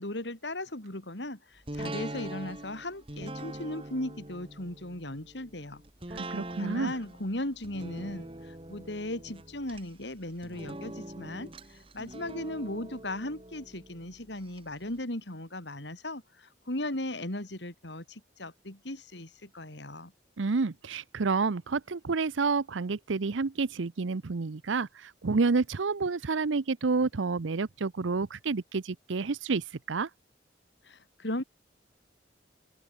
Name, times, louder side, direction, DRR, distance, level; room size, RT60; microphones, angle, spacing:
voice 1, 0.0-5.8 6.6-20.1 30.8-31.4, left 1 dB, 70° left, 3.9 m, -37 dB
sound 1, 1.7-14.6 15.0-15.1, right 1 dB, 30° right, 2.3 m, -43 dB
voice 2, 6.1-6.9 20.4-30.1, right 4 dB, 90° right, 0.7 m, -29 dB
open air
head